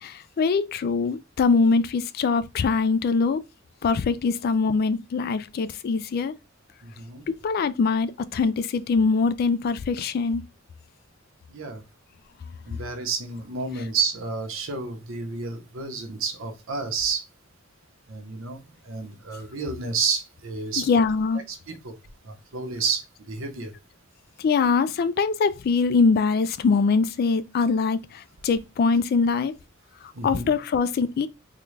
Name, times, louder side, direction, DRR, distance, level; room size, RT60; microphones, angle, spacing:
voice 1, 0.0-3.4 3.8-6.3 7.4-10.4 20.8-21.4 24.4-29.5 30.2-31.3, left 4 dB, 50° left, 0.3 m, -23 dB
voice 2, 6.8-7.3 11.5-11.8 12.7-17.2 18.1-21.0 21.5-22.0 22.2-23.7 30.1-30.5, right 5 dB, 80° right, 0.8 m, -30 dB
3.7 x 2.2 x 3.2 m
head